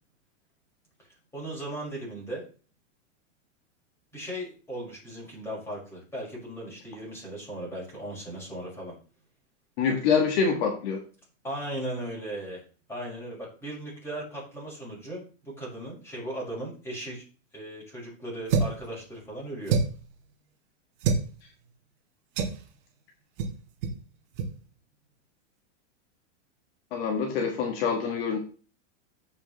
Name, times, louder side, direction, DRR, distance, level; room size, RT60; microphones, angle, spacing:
voice 1, 1.3-2.4 4.1-8.9 11.4-12.6 12.9-17.2 17.5-19.8, right 1 dB, 5° left, -5 dB, 5.6 m, -37 dB
voice 2, 9.8-11.0 26.9-28.4, left 6 dB, 50° left, 2 dB, 1.9 m, -25 dB
sound 1, 18.5-18.8 19.7-20.1 21.0-21.3 22.4-22.6 23.4-23.6 23.8-24.0 24.3-24.5, right 5 dB, 45° right, 1.7 m, -26 dB
14.5 x 5.8 x 3.2 m, 0.38 s
supercardioid pair, 160°, 38 cm